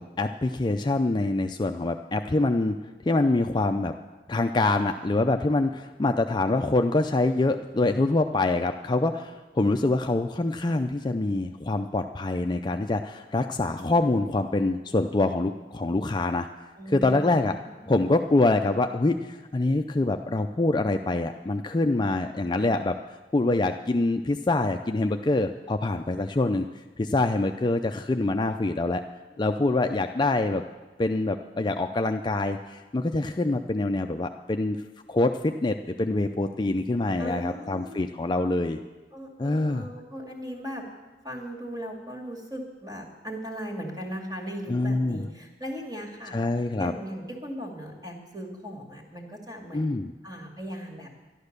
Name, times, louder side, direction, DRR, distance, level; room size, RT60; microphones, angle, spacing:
voice 1, 0.0-2.8 3.0-3.9 4.3-16.5 16.9-17.5 17.9-23.0 23.3-26.7 27.0-29.0 29.4-30.6 31.0-34.8 35.1-38.8 39.4-39.9 44.7-45.3 46.3-46.9 49.7-50.1, left 2 dB, 25° left, 6 dB, 0.4 m, -25 dB
voice 2, 16.8-17.9 29.3-29.8 37.2-38.3 39.1-40.9 41.2-46.4 46.8-49.8 50.2-51.1, equal, 20° right, 0 dB, 2.3 m, -38 dB
12.0 x 11.5 x 6.7 m, 1.2 s
head